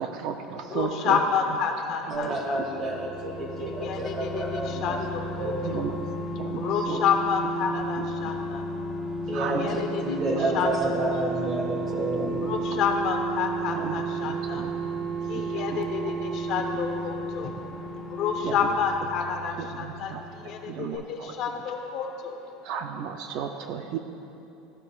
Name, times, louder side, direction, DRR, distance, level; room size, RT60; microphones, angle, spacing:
voice 1, 0.0-1.2 2.0-2.6 3.8-3.9 4.6-4.9 5.2-5.9 6.4-7.0 7.9-8.3 9.3-9.8 10.3-10.4 13.7-16.1 16.8-16.9 18.4-18.7 19.6-21.4 22.6-24.0, right 7 dB, 55° right, 6 dB, 0.5 m, -35 dB
voice 2, 0.7-2.6 3.6-5.8 6.5-8.6 9.3-10.2 10.5-10.7 12.3-14.6 15.3-22.4, left 6 dB, 45° left, 4 dB, 0.8 m, -29 dB
voice 3, 2.1-5.0 5.4-5.8 9.3-12.4, right 1 dB, 30° right, 0 dB, 1.4 m, -30 dB
sound 1, 2.4-20.7 20.9-21.0, right 2 dB, ahead, 1.1 m, -33 dB
14.5 x 7.6 x 2.4 m, 2.7 s
cardioid pair, 150°, 0 cm